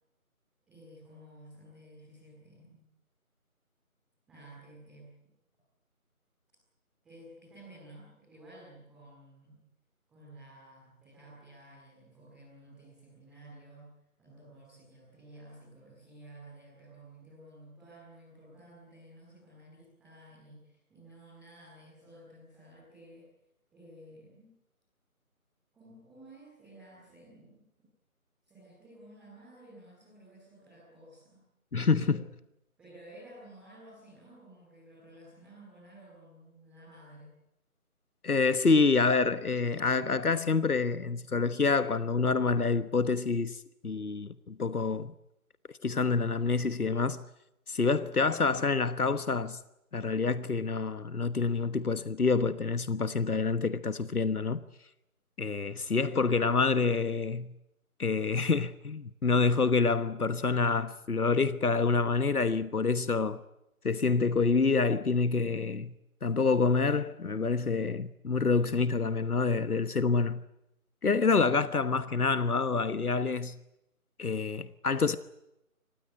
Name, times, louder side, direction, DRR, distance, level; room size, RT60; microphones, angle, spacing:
voice 1, 0.7-2.8 4.3-5.1 7.0-9.6 10.1-13.9 14.2-23.3 23.7-24.6 25.7-27.6 28.4-31.4 32.1-32.2 32.8-37.3, right 1 dB, ahead, 2.7 m, -53 dB
voice 2, 31.7-32.2 38.2-45.1 45.8-47.2 47.7-49.6 49.9-54.6 55.4-57.5 58.0-63.4 63.8-65.9 66.2-70.4 71.0-73.6 74.2-75.2, left 4 dB, 80° left, 1.3 m, -27 dB
25.0 x 20.0 x 9.7 m
figure-of-eight pair, 170°, 44 cm